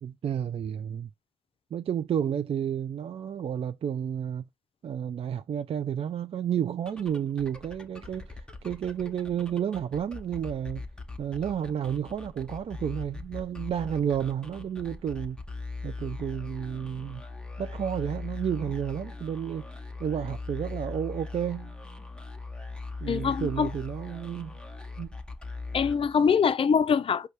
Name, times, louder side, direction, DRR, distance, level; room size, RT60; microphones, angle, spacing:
voice 1, 0.0-1.1 1.7-4.4 4.8-10.8 11.2-15.4 15.8-17.2 17.6-19.7 20.0-21.7 23.0-24.6 25.0-25.1, right 9 dB, 40° right, 0.3 m, -31 dB
sound 1, 6.7-26.5, left 3 dB, 5° left, 0.9 m, -40 dB
voice 2, 23.1-23.7 25.7-27.3, left 6 dB, 35° left, 0.4 m, -24 dB
5.1 x 2.3 x 4.5 m
hypercardioid pair, 45°, 15 cm